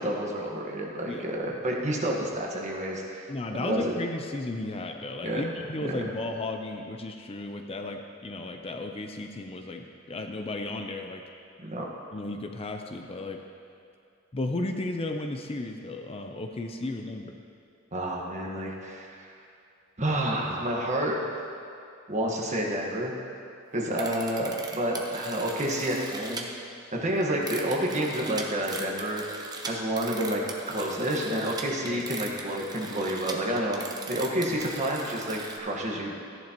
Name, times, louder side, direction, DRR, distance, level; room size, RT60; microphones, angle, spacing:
voice 1, 0.0-3.3 3.6-3.9 5.2-5.4 5.8-6.0 11.6-11.9 17.9-19.3 20.0-21.3 22.1-23.1 23.7-26.5 26.9-29.2 29.7-36.1, right 1 dB, 35° right, -2 dB, 1.4 m, -29 dB
voice 2, 3.3-11.2 12.1-13.4 14.3-17.3 31.9-32.0, left 2 dB, 30° left, 4 dB, 0.5 m, -34 dB
sound 1, 23.9-26.4 27.2-35.6, right 3 dB, 20° right, 0.8 m, -39 dB
14.0 x 10.5 x 3.0 m, 2.5 s
head